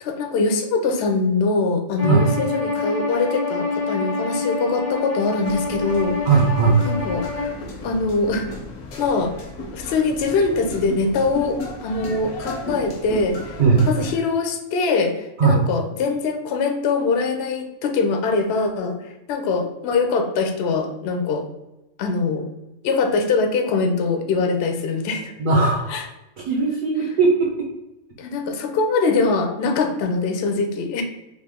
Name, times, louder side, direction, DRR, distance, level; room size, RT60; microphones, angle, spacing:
voice 1, 0.0-6.2 6.9-7.5 7.8-8.5 9.0-9.3 9.7-21.4 22.0-22.5 22.8-25.3 25.9-26.1 28.2-31.0, left 4 dB, 65° left, 4 dB, 0.7 m, -23 dB
Bowed string instrument, 2.0-7.6, left 3 dB, 35° right, 0.8 m, -27 dB
sound 1, 5.4-14.2, left 1 dB, 90° left, 1.3 m, -35 dB
voice 2, 6.2-6.8 13.6-13.8 15.4-15.6 25.4-26.0 26.5-27.5, right 4 dB, 75° right, -3 dB, 0.4 m, -17 dB
3.0 x 2.4 x 3.5 m, 0.96 s
omnidirectional pair, 1.5 m